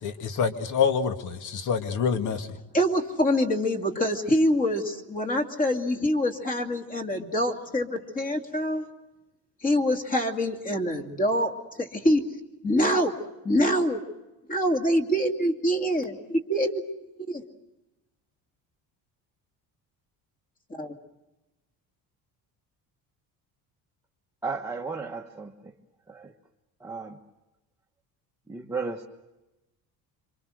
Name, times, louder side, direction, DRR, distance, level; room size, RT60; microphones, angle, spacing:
voice 1, 0.0-2.6, left 6 dB, 50° left, 7 dB, 2.2 m, -26 dB
voice 2, 2.7-8.8 9.6-12.2 12.6-13.1 13.4-14.0 14.5-16.8 17.3-17.4 20.8-20.9, equal, 20° left, 3 dB, 2.5 m, -25 dB
voice 3, 24.4-25.7 26.1-26.3 26.8-27.2 28.5-29.1, right 4 dB, 10° right, 1 dB, 1.2 m, -34 dB
27.5 x 25.5 x 6.4 m, 1.0 s
cardioid pair, 160°, 38 cm